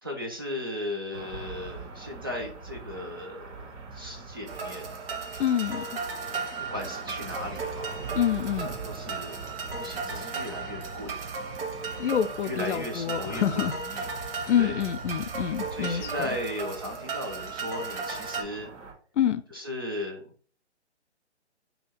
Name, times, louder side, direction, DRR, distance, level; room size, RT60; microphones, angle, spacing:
voice 1, 0.0-4.9 6.3-8.2 8.6-9.4 9.7-11.1 12.4-14.1 14.6-14.8 15.7-18.7 19.5-20.3, left 1 dB, 20° right, 0.3 m, -37 dB
sound 1, 1.1-18.9, right 4 dB, 85° right, 1.2 m, -43 dB
sound 2, 4.5-18.4, right 5 dB, 55° right, 0.8 m, -36 dB
voice 2, 5.4-5.9 8.1-8.7 12.0-13.8 14.5-16.3 19.2-19.4, left 9 dB, 85° left, 0.5 m, -27 dB
2.8 x 2.7 x 4.3 m
hypercardioid pair, 150°, 35 cm